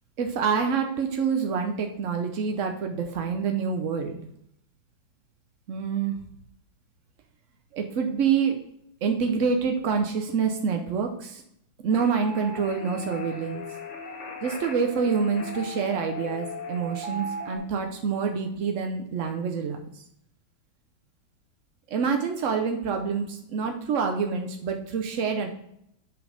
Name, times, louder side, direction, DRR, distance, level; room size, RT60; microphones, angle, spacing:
voice 1, 0.2-4.3 5.7-6.2 7.7-8.5 9.0-11.4 11.8-13.6 14.4-20.0 21.9-25.5, right 6 dB, 70° right, 4 dB, 0.7 m, -27 dB
sound 1, 11.9-17.6, left 1 dB, 40° left, 1.3 m, -37 dB
6.2 x 5.2 x 5.0 m, 0.72 s
omnidirectional pair, 2.2 m